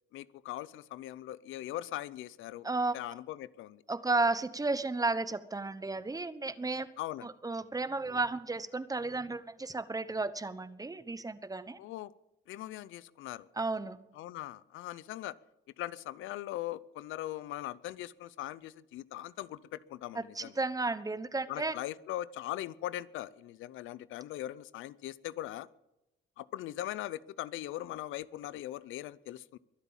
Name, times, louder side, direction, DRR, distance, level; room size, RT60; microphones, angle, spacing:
voice 1, 0.1-2.7 2.9-3.8 7.0-7.3 11.8-12.1 12.5-13.5 14.1-15.3 15.8-20.5 21.5-25.7 26.4-29.6, left 14 dB, 85° left, 19 dB, 0.6 m, -40 dB
voice 2, 2.6-2.9 3.9-6.9 7.2-11.8 13.6-14.0 20.1-21.7, right 3 dB, 20° right, 14 dB, 1.0 m, -33 dB
23.0 x 8.2 x 7.3 m, 0.92 s
cardioid pair, 90°, 20 cm